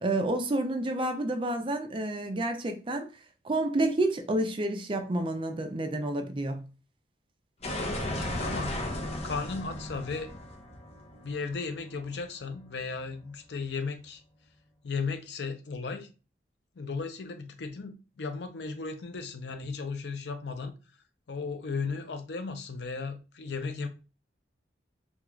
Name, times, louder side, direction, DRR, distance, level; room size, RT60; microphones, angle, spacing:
voice 1, 0.0-3.1 3.4-6.7, right 1 dB, 30° right, 0.4 m, -29 dB
sound 1, 7.6-12.4, left 1 dB, 35° left, 0.7 m, -35 dB
voice 2, 8.1-8.9 9.2-10.3 11.2-14.2 14.8-16.1 16.8-20.7 21.3-23.9, left 4 dB, 70° left, 0.5 m, -35 dB
3.5 x 2.4 x 3.0 m
head